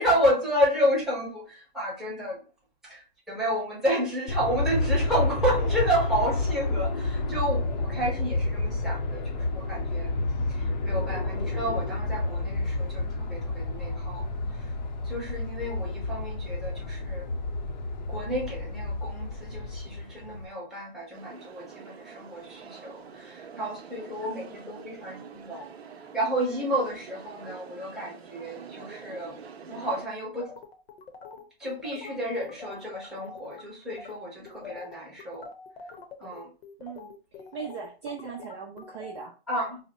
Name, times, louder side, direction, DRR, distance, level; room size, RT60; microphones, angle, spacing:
voice 1, 0.0-2.4 2.8-10.1 10.5-14.3 14.6-14.7 15.0-17.3 18.1-25.7 26.1-29.4 29.7-30.5 31.6-35.5 36.2-36.5 39.5-39.8, equal, ahead, 0.9 m, -31 dB
Aircraft, 4.3-20.5, left 2 dB, 45° left, 0.6 m, -30 dB
sound 1, 21.1-30.1, right 6 dB, 80° right, 0.7 m, -46 dB
sound 2, 30.4-33.6 33.9-34.2 34.5-39.3, left 5 dB, 75° left, 0.8 m, -44 dB
voice 2, 36.8-37.1 37.5-39.3, right 7 dB, 30° right, 0.4 m, -39 dB
2.8 x 2.1 x 4.1 m
hypercardioid pair, 145°, 31 cm